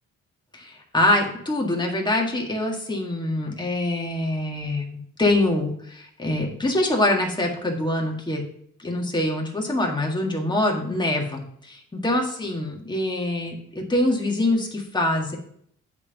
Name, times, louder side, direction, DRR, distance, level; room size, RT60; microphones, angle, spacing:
voice 1, 0.5-4.9 5.2-8.4 8.8-15.4, left 1 dB, 15° left, 0 dB, 1.7 m, -24 dB
8.3 x 3.6 x 5.6 m, 0.67 s
cardioid pair, 90°, 30 cm